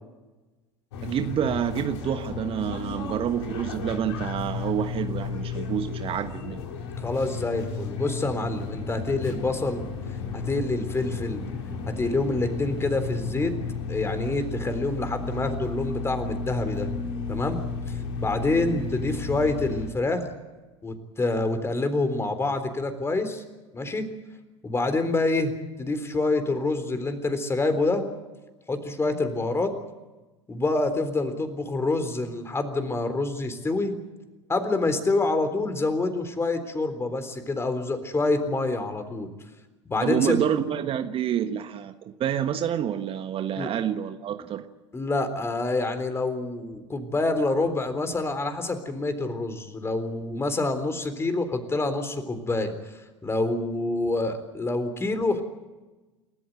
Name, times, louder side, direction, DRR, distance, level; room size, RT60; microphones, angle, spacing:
sound 1, 0.9-19.9, left 5 dB, 65° left, 4.0 m, -33 dB
voice 1, 1.0-6.7 40.0-44.6, right 9 dB, 35° right, 8 dB, 1.4 m, -28 dB
voice 2, 7.0-9.8 10.3-11.5 11.9-13.5 13.9-16.9 17.3-20.3 20.8-23.4 23.7-24.1 24.6-25.5 25.8-28.1 28.7-29.7 30.5-34.0 34.5-39.3 39.9-40.4 43.6-43.7 44.9-55.4, left 2 dB, 15° left, 9 dB, 3.8 m, -27 dB
29.0 x 14.0 x 9.2 m, 1.2 s
figure-of-eight pair, 75°, 15 cm